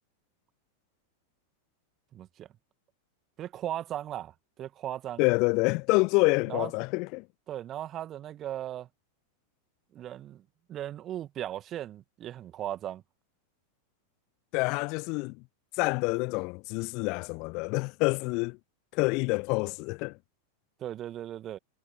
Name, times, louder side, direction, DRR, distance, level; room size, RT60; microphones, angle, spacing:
voice 1, 2.1-2.5 3.4-5.2 6.5-6.7 7.5-8.9 9.9-10.4 10.7-13.0 20.8-21.6, right 12 dB, 30° right, 2.3 m, -37 dB
voice 2, 5.2-7.2 14.5-15.4 15.8-18.6 18.9-20.2, left 28 dB, 45° left, 0.3 m, -27 dB
figure-of-eight pair, 90°, 0 cm